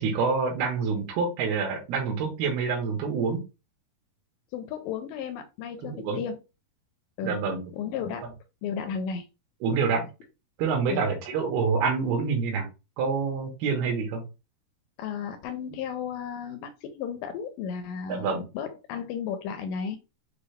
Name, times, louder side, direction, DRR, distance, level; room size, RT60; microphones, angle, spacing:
voice 1, 0.0-3.4 5.8-6.2 7.2-7.7 9.6-10.0 10.6-12.7 13.0-14.2 18.1-18.4, right 5 dB, 80° right, 0 dB, 3.0 m, -27 dB
voice 2, 4.5-6.4 7.2-7.4 7.7-8.3 8.6-9.3 10.9-11.0 15.0-20.0, left 7 dB, 85° left, 7 dB, 2.0 m, -34 dB
6.7 x 2.3 x 3.3 m, 0.28 s
omnidirectional pair, 4.5 m